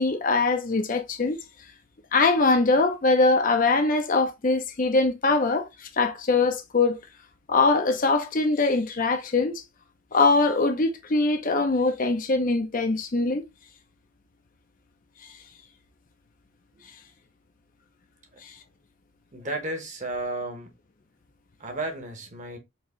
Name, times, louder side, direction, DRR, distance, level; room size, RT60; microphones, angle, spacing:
voice 1, 0.0-1.4 2.1-7.0 7.5-9.6 10.1-13.4 18.4-18.5, left 3 dB, 40° left, 0.5 m, -22 dB
voice 2, 19.3-20.7 21.6-22.6, right 2 dB, 35° right, 1.0 m, -33 dB
4.5 x 2.9 x 2.9 m
head